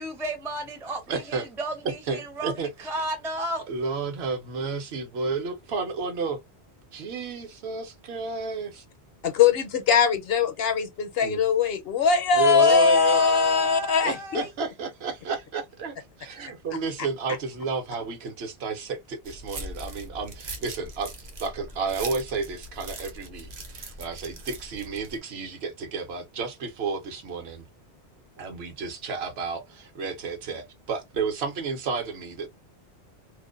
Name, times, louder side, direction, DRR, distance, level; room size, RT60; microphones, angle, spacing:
voice 1, 0.0-3.6 12.4-14.5, right 1 dB, 5° right, 0.4 m, -33 dB
voice 2, 1.1-1.5 1.8-2.7 3.7-6.4 6.9-8.8 11.2-11.4 12.4-21.1 21.4-27.6 28.4-32.5, right 5 dB, 70° right, 0.9 m, -32 dB
voice 3, 9.2-14.4, left 6 dB, 65° left, 0.8 m, -21 dB
sound 1, 19.2-25.2, right 2 dB, 45° right, 0.6 m, -40 dB
2.5 x 2.1 x 2.3 m
omnidirectional pair, 1.1 m